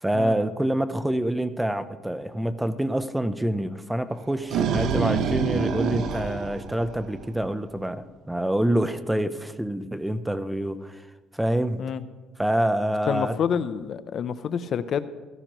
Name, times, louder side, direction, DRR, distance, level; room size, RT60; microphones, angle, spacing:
voice 1, 0.0-11.1 11.3-11.8 12.4-13.4, right 1 dB, 5° right, 12 dB, 0.6 m, -26 dB
sound 1, 4.2-7.4, right 6 dB, 65° right, 0.9 m, -26 dB
voice 2, 13.1-15.1, left 7 dB, 50° left, 13 dB, 0.5 m, -27 dB
16.0 x 13.5 x 3.0 m, 1.3 s
cardioid pair, 120°, 0 cm